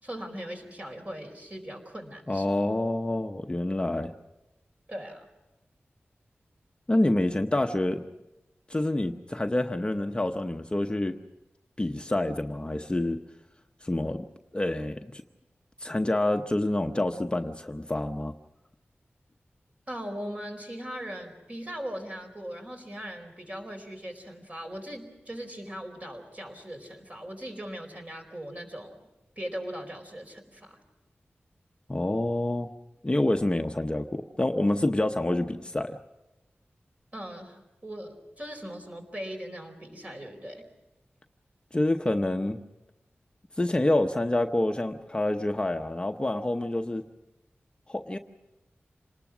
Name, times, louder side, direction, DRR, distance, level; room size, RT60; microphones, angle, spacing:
voice 1, 0.0-2.5 4.9-5.3 19.9-29.0 29.4-30.8 37.1-40.7, equal, 35° right, 3 dB, 4.6 m, -39 dB
voice 2, 2.3-4.1 6.9-8.0 8.7-11.2 11.8-13.2 13.8-14.3 14.5-15.2 15.8-18.3 31.9-32.7 33.0-36.0 41.7-42.6 43.6-47.0 47.9-48.2, left 1 dB, 25° left, 5 dB, 0.8 m, -27 dB
27.0 x 19.5 x 6.1 m, 0.96 s
wide cardioid pair, 85°, 4 cm